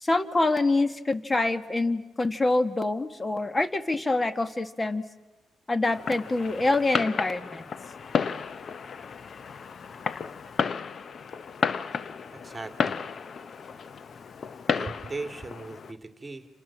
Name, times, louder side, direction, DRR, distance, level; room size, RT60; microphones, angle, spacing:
voice 1, 0.0-5.0 5.7-7.6, left 2 dB, 20° left, 10 dB, 1.7 m, -25 dB
Fireworks, 5.9-15.9, left 6 dB, 50° left, 0.9 m, -32 dB
voice 2, 12.3-13.0 14.7-16.5, right 3 dB, 20° right, 7 dB, 2.7 m, -38 dB
29.0 x 27.5 x 7.4 m, 1.1 s
cardioid pair, 90°, 0 cm